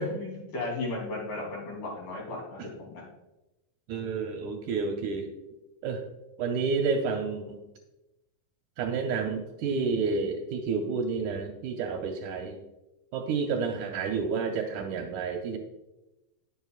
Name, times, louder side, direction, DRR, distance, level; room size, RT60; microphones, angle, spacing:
voice 1, 0.0-3.0, left 2 dB, 65° left, -3 dB, 4.7 m, -35 dB
voice 2, 3.9-5.3 5.8-6.0 6.4-7.6 8.8-12.6 13.1-15.6, right 5 dB, 70° right, 3 dB, 2.0 m, -30 dB
18.5 x 7.3 x 2.4 m, 0.98 s
omnidirectional pair, 4.1 m